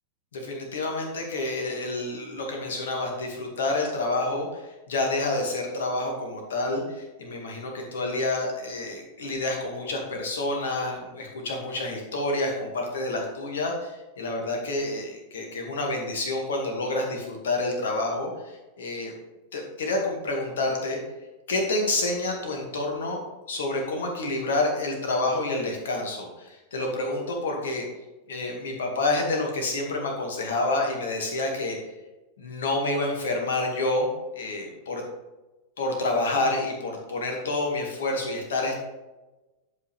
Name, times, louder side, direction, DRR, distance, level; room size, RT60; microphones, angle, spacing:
voice 1, 0.3-19.1 19.5-21.0 21.5-23.2 23.5-27.8 28.3-31.8 32.4-34.1 34.4-35.0 35.8-38.8, left 2 dB, 60° left, 1 dB, 2.1 m, -28 dB
10.5 x 5.6 x 3.4 m, 1.1 s
figure-of-eight pair, 90°, 0 cm